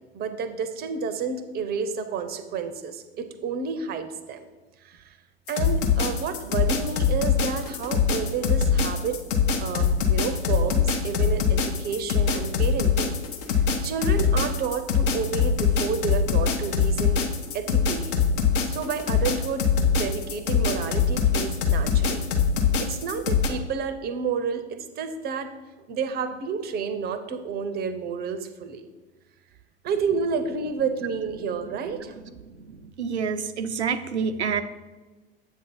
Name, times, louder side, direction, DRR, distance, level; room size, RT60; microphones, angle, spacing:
voice 1, 0.1-4.5 4.8-5.2 5.5-9.2 9.6-13.2 13.5-17.2 17.5-18.1 18.7-22.3 22.6-25.5 25.9-28.9 29.8-32.2, right 6 dB, 30° right, 10 dB, 0.6 m, -30 dB
sound 1, 5.5-23.5, left 6 dB, 55° left, 0.9 m, -23 dB
voice 2, 33.0-34.6, right 6 dB, 85° right, 11 dB, 0.5 m, -27 dB
7.5 x 2.7 x 5.3 m, 1.2 s
figure-of-eight pair, 80°, 32 cm